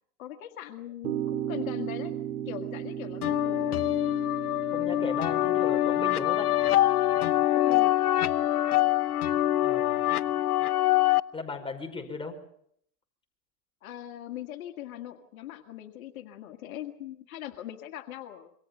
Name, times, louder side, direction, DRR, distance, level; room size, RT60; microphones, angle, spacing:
voice 1, 0.2-2.1 2.5-3.8 7.5-8.0 13.8-18.5, left 12 dB, 70° left, 6 dB, 1.9 m, -41 dB
sound 1, 1.0-7.4, right 11 dB, 80° right, 2.2 m, -37 dB
sound 2, 3.2-11.2, left 14 dB, 85° left, 0.9 m, -24 dB
voice 2, 4.7-6.5 9.6-10.4 11.3-12.4, left 4 dB, 10° left, 4 dB, 5.3 m, -36 dB
27.0 x 24.0 x 5.5 m, 0.68 s
hypercardioid pair, 115°, 43 cm